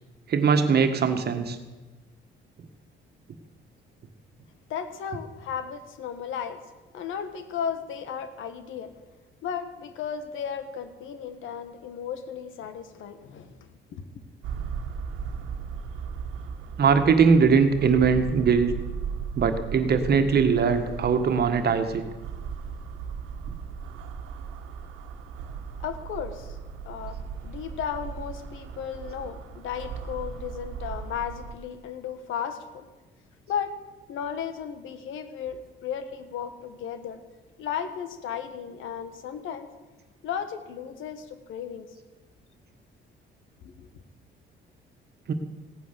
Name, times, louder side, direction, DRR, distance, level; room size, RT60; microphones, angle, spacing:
voice 1, 0.3-1.6 16.8-18.7 19.4-22.0 45.3-45.4, right 5 dB, 55° right, 8 dB, 1.6 m, -21 dB
voice 2, 4.7-6.6 6.9-9.0 9.4-14.0 25.8-26.6 26.8-27.2 27.4-32.9 33.5-33.7 34.1-37.2 37.6-39.7 40.2-41.9 43.6-43.9, left 8 dB, 85° left, 10 dB, 1.5 m, -35 dB
sound 1, 14.4-31.5, right 6 dB, 90° right, 1.5 m, -37 dB
16.5 x 9.5 x 6.8 m, 1.2 s
cardioid pair, 90°, 20 cm